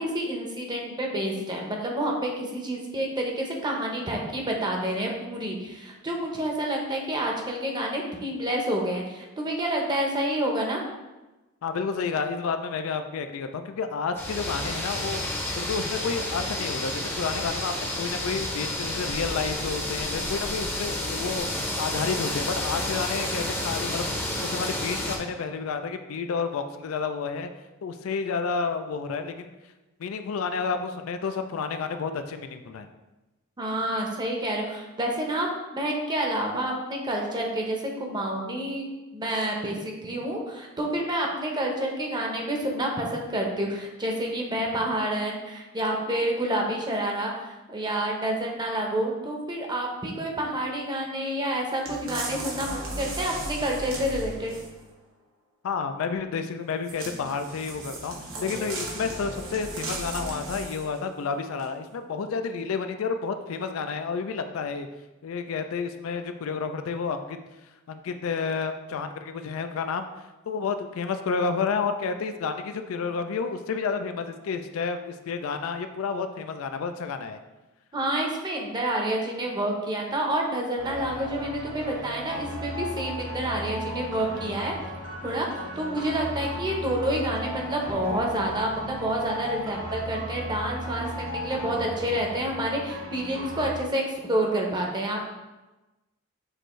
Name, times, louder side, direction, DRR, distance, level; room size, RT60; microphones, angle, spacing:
voice 1, 0.0-10.8 33.6-35.5 35.7-54.5 77.9-84.7 85.2-95.3, right 1 dB, 20° right, 0 dB, 0.7 m, -28 dB
voice 2, 11.6-15.2 15.6-24.0 24.4-27.5 27.8-29.5 30.0-32.9 55.6-64.9 65.2-67.4 67.9-70.0 70.5-77.4, left 5 dB, 85° left, 8 dB, 0.4 m, -30 dB
sound 1, 14.2-25.2, left 1 dB, 10° left, 0.6 m, -30 dB
sound 2, 51.9-54.8 56.8-61.0 61.6-61.7, right 1 dB, 90° right, 1.1 m, -36 dB
sound 3, 80.8-93.7, equal, 70° right, 1.0 m, -36 dB
6.4 x 2.6 x 3.1 m, 1.1 s
head